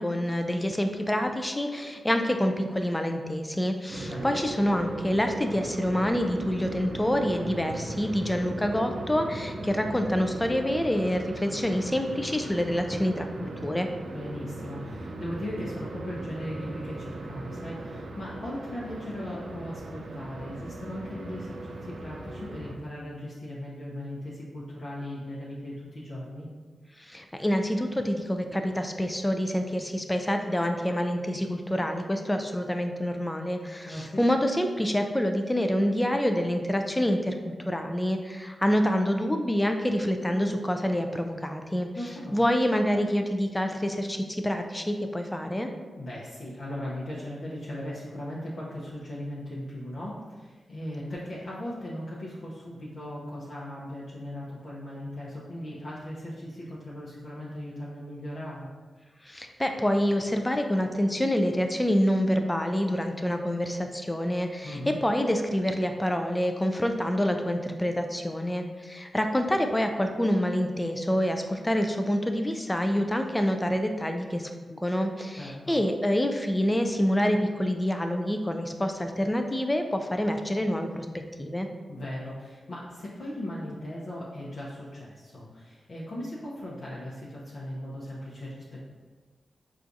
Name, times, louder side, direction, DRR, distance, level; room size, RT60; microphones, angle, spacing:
voice 1, 0.0-13.3 13.6-13.9 27.0-41.9 42.3-45.7 59.2-81.1 81.4-81.7, equal, 15° left, 5 dB, 0.3 m, -27 dB
sound 1, 3.9-22.8, right 2 dB, 75° right, 0.4 m, -38 dB
voice 2, 4.0-4.4 14.1-26.5 33.9-34.3 41.9-42.4 46.0-58.7 64.6-65.0 75.4-75.8 81.9-88.8, left 1 dB, 65° left, -8 dB, 0.6 m, -38 dB
4.4 x 2.4 x 2.6 m, 1.4 s
cardioid pair, 65°, 0 cm